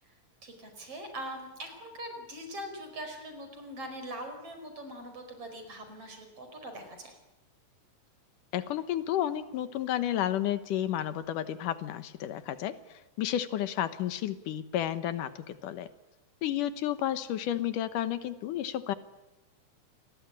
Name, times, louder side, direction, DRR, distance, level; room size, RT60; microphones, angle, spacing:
voice 1, 0.4-7.2, right 1 dB, 45° right, 6 dB, 5.9 m, -42 dB
voice 2, 8.5-15.9 16.4-18.9, left 11 dB, 80° left, 12 dB, 2.7 m, -32 dB
28.0 x 20.0 x 9.9 m, 0.97 s
omnidirectional pair, 3.7 m